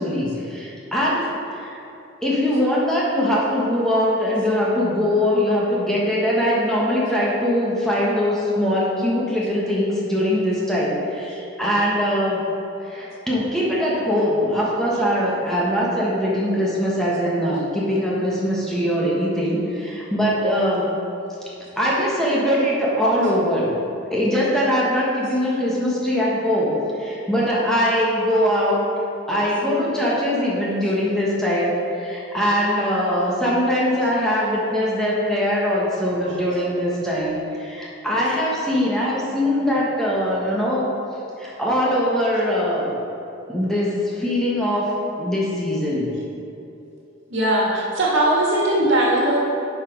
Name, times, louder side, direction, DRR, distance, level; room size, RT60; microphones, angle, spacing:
voice 1, 0.0-1.8 2.2-12.4 12.8-21.0 21.8-23.8 24.1-28.9 29.3-40.9 41.4-42.9 43.5-44.9 45.2-46.1, equal, 5° left, -6 dB, 1.1 m, -22 dB
voice 2, 47.3-49.4, right 1 dB, 75° right, -4 dB, 1.7 m, -19 dB
7.4 x 4.9 x 5.1 m, 2.8 s
head